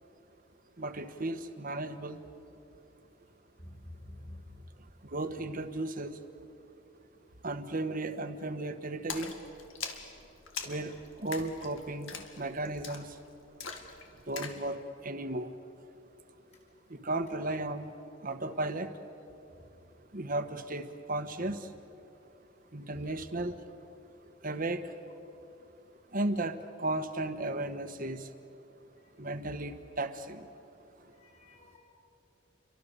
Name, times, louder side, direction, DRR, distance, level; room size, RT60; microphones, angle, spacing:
voice 1, 0.8-2.2 5.1-6.2 7.4-9.3 10.7-13.1 14.3-15.5 16.9-17.9 18.2-18.9 20.1-21.7 22.7-23.6 24.4-24.8 26.1-28.3 29.2-30.5, right 2 dB, 45° right, 9 dB, 1.4 m, -35 dB
voice 2, 4.0-4.4 31.2-31.8, left 1 dB, 35° left, -1 dB, 6.4 m, -49 dB
Splash splatter, 9.1-14.6, left 6 dB, 85° left, 2.2 m, -43 dB
30.0 x 23.5 x 6.9 m, 2.8 s
head